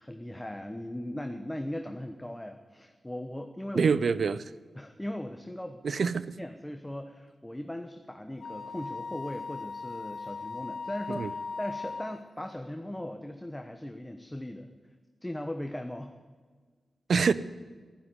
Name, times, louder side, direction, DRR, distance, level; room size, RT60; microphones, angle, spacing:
voice 1, 0.0-3.9 4.7-5.8 6.4-14.7 15.2-16.1, left 1 dB, 10° left, 6 dB, 1.1 m, -38 dB
voice 2, 3.7-4.4 5.8-6.4 11.1-11.3 17.1-17.3, right 5 dB, 70° right, 17 dB, 0.6 m, -25 dB
Wind instrument woodwind instrument, 8.4-12.3, left 4 dB, 80° left, 1.0 m, -39 dB
11.5 x 11.0 x 9.6 m, 1.5 s
cardioid pair, 50°, 0 cm